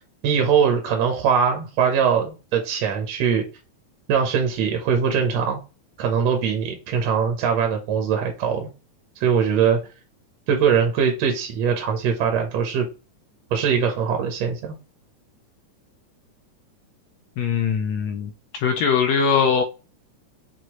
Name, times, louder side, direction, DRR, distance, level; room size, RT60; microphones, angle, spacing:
voice 1, 0.2-3.4 4.1-5.6 6.0-8.7 9.2-9.8 10.5-12.9 13.5-14.8, right 7 dB, 70° right, 1.8 m, -21 dB
voice 2, 17.4-19.6, left 6 dB, 80° left, 1.5 m, -21 dB
6.2 x 2.6 x 2.9 m
omnidirectional pair, 3.5 m